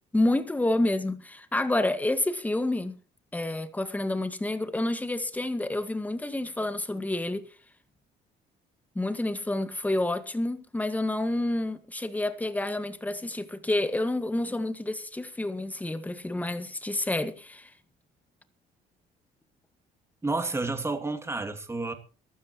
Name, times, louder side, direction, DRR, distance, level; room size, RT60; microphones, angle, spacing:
voice 1, 0.1-3.0 3.3-7.4 8.9-17.7, left 1 dB, 10° left, 1.7 m, -29 dB
voice 2, 20.2-21.9, right 3 dB, 15° right, 2.6 m, -30 dB
23.0 x 12.5 x 3.1 m
cardioid pair, 110°, 17 cm